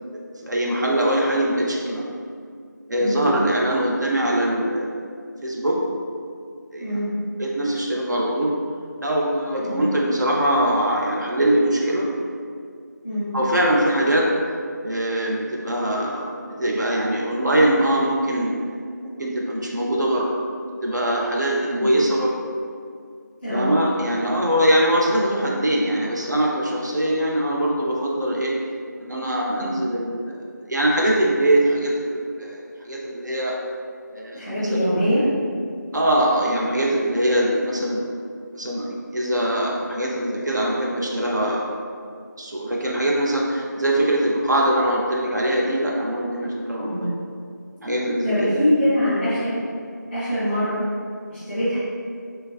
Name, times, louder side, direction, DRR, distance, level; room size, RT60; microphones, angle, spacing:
voice 1, 0.4-2.1 2.9-4.9 5.4-5.8 6.0-6.1 6.7-6.9 7.4-8.5 9.0-12.1 13.3-14.3 14.8-18.7 19.2-20.4 20.8-22.3 23.5-28.5 29.0-33.5 34.1-34.4 34.7-34.8 35.9-38.1 38.6-41.6 42.4-47.2 47.8-48.6, right 1 dB, 65° right, -3 dB, 0.5 m, -22 dB
voice 2, 34.3-35.2 46.8-47.1 48.2-49.5 50.1-50.8 51.3-51.8, equal, 5° left, -18 dB, 0.7 m, -23 dB
3.2 x 2.3 x 2.3 m, 2.2 s
figure-of-eight pair, 175°, 10 cm